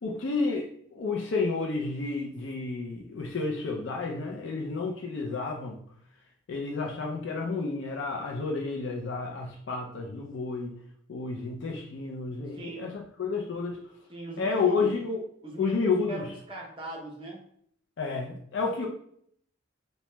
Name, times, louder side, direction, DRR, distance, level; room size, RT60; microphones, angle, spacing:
voice 1, 0.0-5.8 6.5-10.7 11.1-13.8 14.4-15.2 15.6-16.3 18.0-18.9, left 4 dB, 65° left, 0 dB, 0.4 m, -31 dB
voice 2, 12.5-13.0 14.1-14.9 15.4-15.8 16.1-17.4, right 2 dB, 25° right, -1 dB, 0.6 m, -40 dB
2.9 x 2.1 x 3.2 m, 0.65 s
head